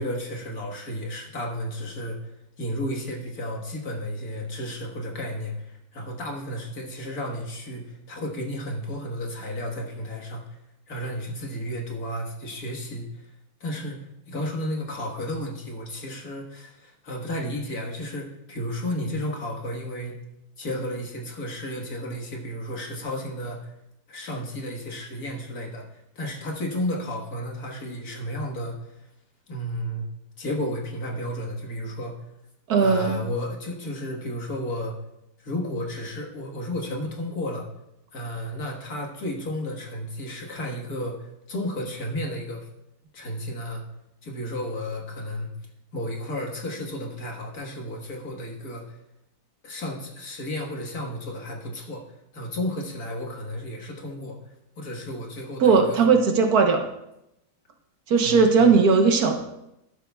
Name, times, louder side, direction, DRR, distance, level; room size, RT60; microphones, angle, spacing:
voice 1, 0.0-2.2 2.6-10.4 10.9-13.3 13.6-20.2 20.6-23.7 24.1-29.0 29.5-30.1 30.4-32.2 32.8-34.9 35.4-37.7 38.1-42.7 43.1-43.8 44.2-45.5 45.9-49.0 49.6-52.1 52.3-56.1 58.2-58.7, equal, 65° left, 0 dB, 2.0 m, -33 dB
voice 2, 32.7-33.2 55.6-56.8 58.1-59.4, right 5 dB, 70° right, 4 dB, 1.5 m, -18 dB
12.0 x 11.5 x 2.3 m, 0.86 s
omnidirectional pair, 1.7 m